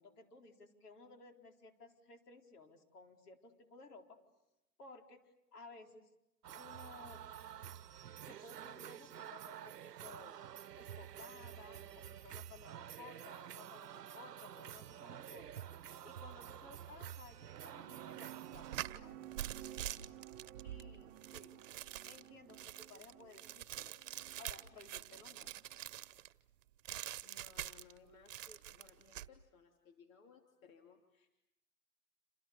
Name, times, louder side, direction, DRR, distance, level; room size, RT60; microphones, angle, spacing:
voice 1, 0.0-4.2 4.8-5.2 5.5-6.1 6.5-7.3 8.2-10.4 10.8-15.5 16.0-19.2 20.6-21.2 22.1-23.9 24.4-25.5, left 3 dB, 75° left, 4 dB, 4.6 m, -57 dB
sound 1, 6.4-18.9, right 10 dB, 90° right, 0.9 m, -50 dB
sound 2, 17.3-26.0, right 13 dB, 20° right, 1.1 m, -55 dB
sound 3, 18.5-26.3 26.8-28.0 28.3-29.3, right 13 dB, 55° right, 1.2 m, -46 dB
voice 2, 27.2-31.3, left 4 dB, 60° left, 4 dB, 3.1 m, -62 dB
28.5 x 28.0 x 7.1 m, 0.89 s
hypercardioid pair, 145°, 46 cm